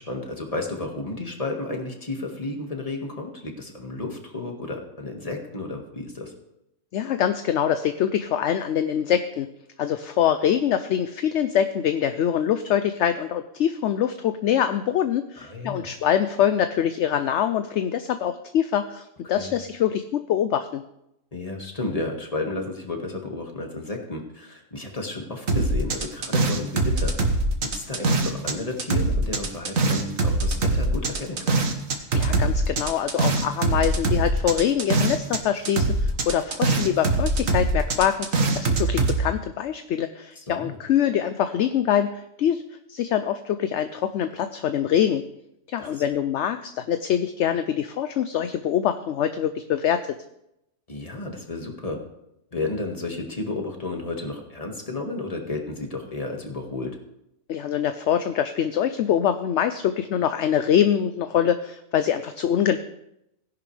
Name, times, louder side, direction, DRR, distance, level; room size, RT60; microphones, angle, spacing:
voice 1, 0.1-6.3 15.4-15.9 19.3-19.5 21.3-27.1 27.6-31.6 40.4-40.8 45.8-46.0 50.9-52.0 52.5-56.9, left 2 dB, 25° left, 2 dB, 1.9 m, -32 dB
voice 2, 6.9-9.5 9.8-20.8 32.1-42.6 42.9-45.2 45.7-50.2 57.5-62.8, left 9 dB, 65° left, 9 dB, 0.8 m, -24 dB
sound 1, 25.5-28.5 28.8-35.4 35.6-39.2, right 2 dB, 70° right, 1.7 m, -23 dB
17.0 x 11.0 x 3.3 m, 0.83 s
omnidirectional pair, 1.4 m